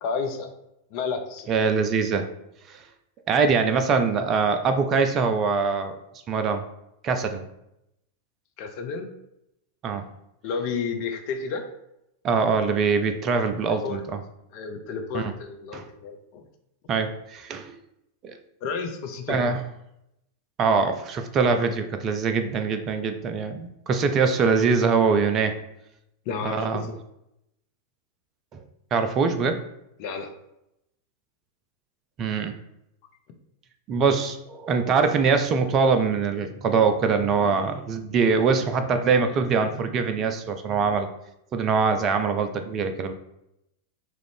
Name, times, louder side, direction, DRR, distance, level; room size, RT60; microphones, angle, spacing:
voice 1, 0.0-0.5 0.9-1.5 8.6-9.1 10.4-11.6 13.6-14.0 14.5-16.4 18.6-19.6 26.3-26.9 30.0-30.3 38.1-38.4, left 5 dB, 45° left, 6 dB, 0.4 m, -31 dB
voice 2, 1.5-2.3 2.7-2.8 3.3-5.9 6.3-6.6 7.0-7.4 9.8-10.1 12.2-14.2 15.1-15.3 15.7-15.9 16.9-17.7 18.2-18.4 19.3-19.6 20.6-25.5 26.4-26.9 28.5-28.6 28.9-29.6 32.2-32.5 33.9-41.1 41.5-43.1, right 5 dB, 30° right, 8 dB, 0.3 m, -23 dB
3.0 x 2.5 x 3.2 m, 0.83 s
figure-of-eight pair, 90°, 0 cm